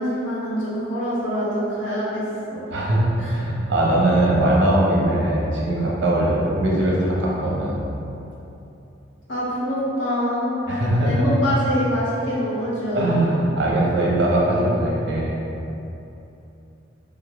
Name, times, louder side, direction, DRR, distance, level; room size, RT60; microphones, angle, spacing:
voice 1, 0.0-2.7 3.2-3.3 9.3-10.5 11.0-13.1, equal, 75° left, -8 dB, 1.0 m, -25 dB
voice 2, 2.7-7.8 10.7-11.3 12.9-15.3, right 1 dB, 70° right, -5 dB, 0.7 m, -20 dB
3.5 x 3.4 x 2.3 m, 2.9 s
head